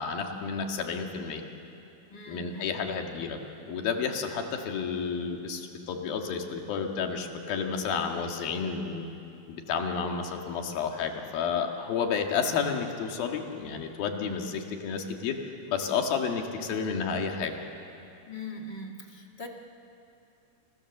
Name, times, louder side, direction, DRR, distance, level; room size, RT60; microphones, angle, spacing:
voice 1, 0.0-1.4 2.3-9.0 9.5-17.6, left 6 dB, 85° left, 3 dB, 3.7 m, -31 dB
voice 2, 2.1-2.7 18.3-19.5, left 2 dB, 35° left, 1 dB, 2.0 m, -41 dB
29.5 x 28.0 x 7.2 m, 2.7 s
omnidirectional pair, 4.1 m